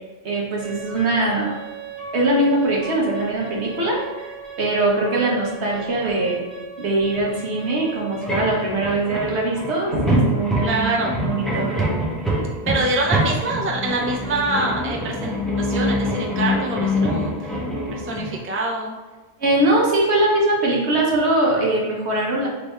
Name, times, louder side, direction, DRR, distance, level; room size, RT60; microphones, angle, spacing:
voice 1, 0.2-1.5 2.1-4.3 4.6-6.4 6.8-10.9 11.2-11.7 19.4-22.5, right 2 dB, 85° right, -2 dB, 1.3 m, -21 dB
sound 1, 0.6-18.4, equal, ahead, 0.9 m, -27 dB
voice 2, 10.6-11.2 12.7-17.5 17.9-19.0, right 2 dB, 20° right, -1 dB, 0.3 m, -25 dB
3.4 x 3.4 x 4.2 m, 1.2 s
omnidirectional pair, 1.1 m